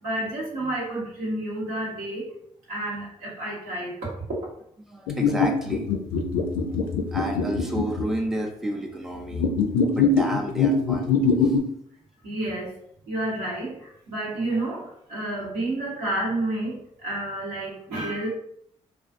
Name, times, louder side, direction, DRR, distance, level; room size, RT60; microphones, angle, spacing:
voice 1, 0.0-2.3 2.7-4.5 12.2-12.8 13.1-18.3, right 1 dB, 80° right, -6 dB, 1.1 m, -30 dB
voice 2, 4.8-5.9 7.1-9.5 9.9-11.6, right 1 dB, ahead, 1 dB, 0.5 m, -31 dB
sound 1, 5.1-8.1 9.3-11.6, left 4 dB, 80° left, 0.4 m, -22 dB
2.4 x 2.3 x 2.4 m, 0.68 s
hypercardioid pair, 45°, 15 cm